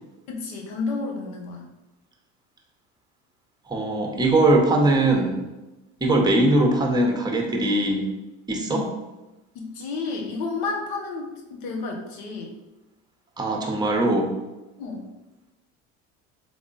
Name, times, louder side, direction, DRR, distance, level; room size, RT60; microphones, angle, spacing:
voice 1, 0.3-1.7 8.7-8.9 9.5-12.5 14.8-15.0, left 4 dB, 85° left, 1 dB, 1.0 m, -31 dB
voice 2, 3.7-5.5 6.0-8.1 8.5-8.8 13.4-14.3, right 2 dB, 15° right, 2 dB, 0.8 m, -21 dB
3.5 x 3.3 x 4.0 m, 1.0 s
supercardioid pair, 100°, 32 cm